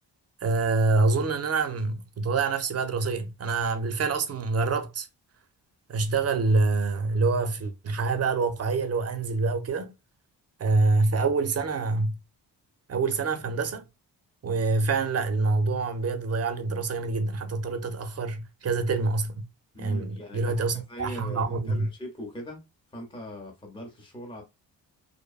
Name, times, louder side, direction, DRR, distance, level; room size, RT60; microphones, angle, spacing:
voice 1, 0.4-5.1 5.9-9.9 10.6-12.2 12.9-13.9 14.4-19.4 19.8-21.9, right 3 dB, 35° right, 0.5 m, -26 dB
voice 2, 19.7-22.6 22.9-24.4, equal, 10° left, 0.8 m, -41 dB
2.6 x 2.2 x 2.3 m
cardioid pair, 80°, 43 cm